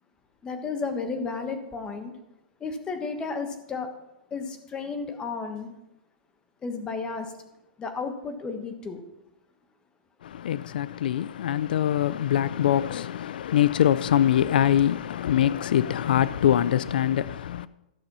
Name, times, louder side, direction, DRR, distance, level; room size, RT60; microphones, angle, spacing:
voice 1, 0.4-2.1 2.6-3.9 4.3-5.7 6.6-7.3 7.8-9.0, left 4 dB, 15° left, 1.3 m, -33 dB
voice 2, 10.2-17.7, left 10 dB, 80° left, 0.4 m, -23 dB
13.5 x 6.6 x 5.6 m
hypercardioid pair, 150°, 5 cm